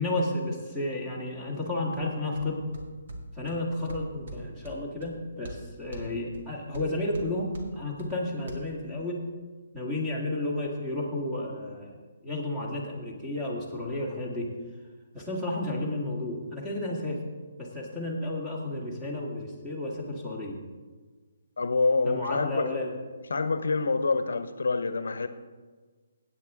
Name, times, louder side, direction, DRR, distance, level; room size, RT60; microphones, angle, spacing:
voice 1, 0.0-2.6 3.3-9.3 9.7-12.0 12.2-14.5 15.1-17.2 17.6-20.6 22.0-22.9, left 1 dB, 5° right, -3 dB, 1.8 m, -32 dB
sound 1, 2.0-8.6, right 1 dB, 55° right, 1.9 m, -45 dB
voice 2, 21.6-22.8 23.3-25.3, left 3 dB, 90° left, 11 dB, 0.8 m, -26 dB
15.0 x 9.0 x 3.6 m, 1.4 s
hypercardioid pair, 170°, 0 cm